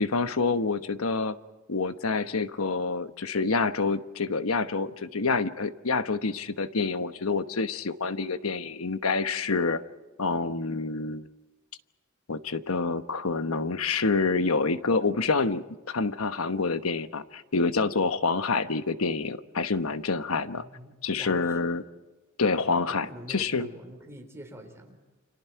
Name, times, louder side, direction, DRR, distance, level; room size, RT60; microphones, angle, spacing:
voice 1, 0.0-1.4 1.7-9.8 10.2-11.3 12.3-20.6 21.0-21.8 22.4-23.7, left 4 dB, 90° left, 10 dB, 1.1 m, -27 dB
voice 2, 20.6-21.8 22.9-25.0, equal, 15° right, 3 dB, 4.0 m, -46 dB
30.0 x 26.5 x 4.7 m, 1.1 s
head